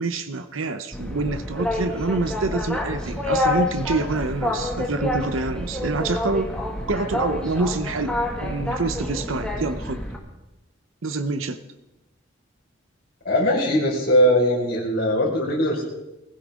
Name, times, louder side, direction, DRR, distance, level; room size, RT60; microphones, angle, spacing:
voice 1, 0.0-6.5 6.9-10.0 11.0-11.6, right 3 dB, 85° right, 9 dB, 0.8 m, -26 dB
Boat Water vehicle, 0.9-10.2, left 1 dB, 5° left, 2.1 m, -28 dB
voice 2, 13.2-15.8, equal, 50° left, -4 dB, 5.0 m, -20 dB
20.5 x 15.5 x 3.7 m, 1.0 s
head